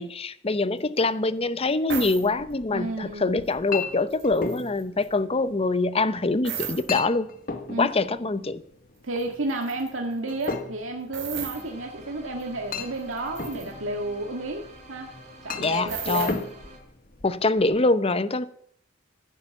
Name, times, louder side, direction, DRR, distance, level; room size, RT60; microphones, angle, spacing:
voice 1, 0.0-7.3 7.8-8.6 15.6-16.4 17.2-18.5, left 3 dB, 30° left, 0.8 m, -24 dB
sound 1, 1.0-1.1 1.9-2.3 3.5-3.8 4.1-5.1 6.4-6.9 9.2-9.3 9.5-9.9 10.3-10.5 11.1-11.6 12.4-12.5 12.8-13.7 15.9-16.4, right 8 dB, 60° right, 3.5 m, -35 dB
Chink clink, 2.3-17.8, left 4 dB, 45° left, 1.4 m, -38 dB
voice 2, 2.7-3.3 7.7-7.9 9.0-15.1 15.4-16.4, right 2 dB, 85° right, 1.9 m, -31 dB
sound 2, 11.5-16.8, right 1 dB, 35° right, 4.5 m, -48 dB
16.0 x 9.7 x 7.1 m
head